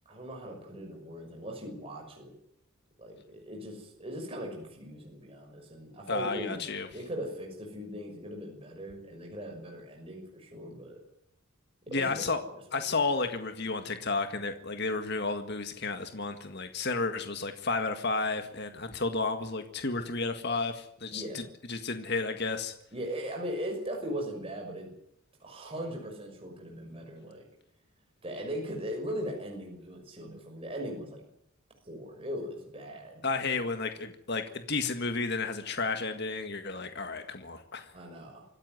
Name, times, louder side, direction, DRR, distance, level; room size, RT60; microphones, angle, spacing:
voice 1, 0.1-2.3 3.0-6.6 6.9-11.0 11.9-12.2 21.1-21.4 22.9-24.9 25.4-27.4 28.2-31.2 31.9-33.2 37.9-38.5, equal, 25° right, 1 dB, 6.0 m, -39 dB
voice 2, 6.1-6.9 11.9-12.4 12.7-22.7 33.2-37.9, left 3 dB, 50° left, 7 dB, 1.9 m, -32 dB
26.0 x 14.5 x 9.4 m, 0.76 s
head